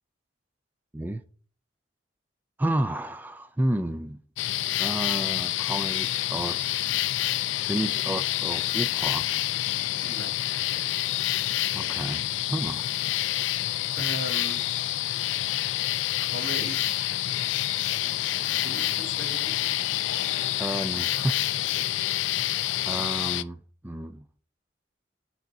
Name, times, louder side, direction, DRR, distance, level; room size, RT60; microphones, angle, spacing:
voice 1, 2.6-4.2 4.8-6.9 7.7-9.4 11.7-12.9 20.6-21.5 22.8-24.3, right 1 dB, 10° right, 0.3 m, -31 dB
sound 1, 4.4-23.4, left 15 dB, 85° left, 0.3 m, -28 dB
voice 2, 10.0-10.3 13.9-14.9 16.2-17.2 17.8-19.7 21.7-22.0, right 2 dB, 85° right, 1.1 m, -39 dB
6.6 x 4.7 x 3.8 m
head